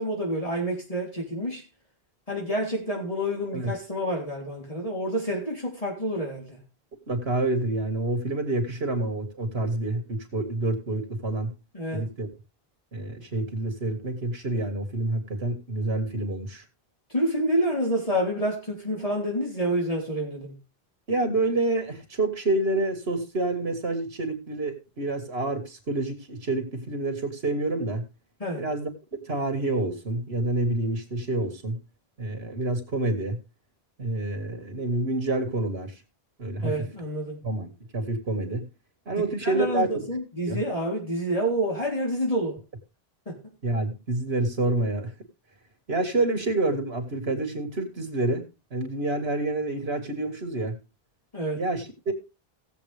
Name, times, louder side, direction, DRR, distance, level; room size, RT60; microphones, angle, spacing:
voice 1, 0.0-1.6 2.3-6.6 11.7-12.1 17.1-20.6 28.4-28.7 36.6-37.4 39.4-42.6 43.3-43.4 51.3-51.6, equal, 35° left, 3.5 m, -28 dB
voice 2, 7.1-11.5 11.9-12.3 12.9-16.6 21.1-28.1 28.6-28.9 29.3-31.8 32.2-33.4 34.0-35.9 36.4-36.7 37.4-38.7 39.1-39.9 40.5-40.6 43.6-45.1 45.9-50.8 51.5-52.1, right 2 dB, 85° right, 2.3 m, -28 dB
17.5 x 7.5 x 3.4 m
omnidirectional pair, 1.0 m